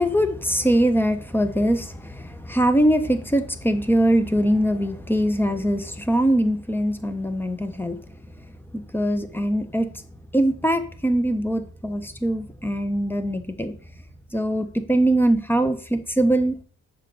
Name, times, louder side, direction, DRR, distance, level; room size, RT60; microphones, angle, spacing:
voice 1, 0.0-8.0 8.9-9.9 10.3-13.7 14.3-16.6, right 1 dB, 5° left, 8 dB, 1.2 m, -22 dB
7.5 x 6.5 x 4.3 m, 0.42 s
cardioid pair, 90°, 30 cm